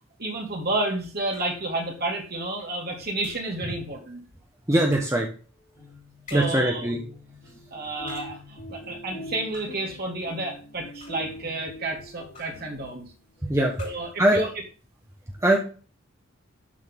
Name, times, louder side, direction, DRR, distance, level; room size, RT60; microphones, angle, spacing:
voice 1, 0.2-4.2 6.3-6.9 7.7-13.0 13.8-14.5, right 2 dB, 45° right, 0 dB, 2.7 m, -30 dB
sound 1, 1.3-1.7 3.2-3.6 4.9-5.3 6.3-6.7 7.9-8.5 9.5-9.9 10.8-11.4 12.3-12.7 13.7-14.2, left 3 dB, 35° left, 3.3 m, -48 dB
voice 2, 4.7-5.3 6.3-7.0 7.5-7.6 13.4-13.7 14.2-14.4 15.4-15.6, right 1 dB, 15° right, 0 dB, 1.1 m, -21 dB
sound 2, 5.6-13.2, left 1 dB, 55° left, 5.2 m, -44 dB
12.5 x 4.3 x 3.7 m, 0.36 s
head